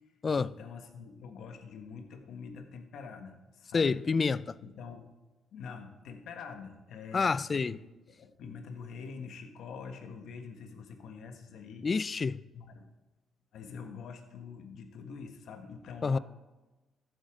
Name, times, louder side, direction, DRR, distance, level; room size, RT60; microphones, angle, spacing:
voice 1, 0.4-4.0 4.6-5.1 5.5-7.8 8.1-11.9 12.5-12.9 13.5-16.2, left 5 dB, 75° left, 1.4 m, -45 dB
voice 2, 3.7-4.6 7.1-7.8 11.8-12.4 16.0-16.2, left 4 dB, 35° left, 0.3 m, -28 dB
14.5 x 7.9 x 3.8 m
cardioid pair, 90°, 0 cm